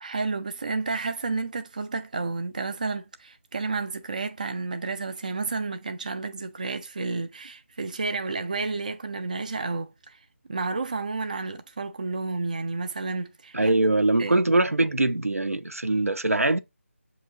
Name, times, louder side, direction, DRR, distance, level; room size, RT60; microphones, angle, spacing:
voice 1, 0.0-10.2 10.5-13.8 14.2-14.3, right 3 dB, 35° right, 0.3 m, -31 dB
voice 2, 13.5-16.6, right 2 dB, 80° right, 0.6 m, -22 dB
7.1 x 2.8 x 2.6 m
figure-of-eight pair, 160°, 8 cm